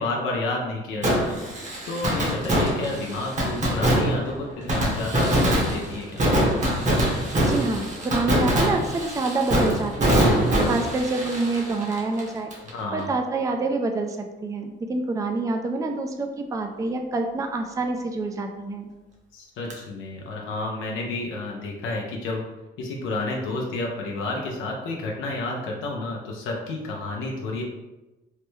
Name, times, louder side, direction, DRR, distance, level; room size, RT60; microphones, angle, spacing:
voice 1, 0.0-6.2 12.7-13.1 19.3-22.4 22.8-27.6, left 2 dB, 90° left, -1 dB, 0.5 m, -30 dB
Fireworks, 1.0-12.7 13.0-13.1 19.7-19.8, right 1 dB, 35° right, 0.9 m, -23 dB
voice 2, 7.4-10.2 10.7-12.5 12.9-18.9, right 3 dB, 15° right, 4 dB, 0.3 m, -27 dB
3.2 x 2.1 x 3.1 m, 1.0 s
cardioid pair, 90°, 20 cm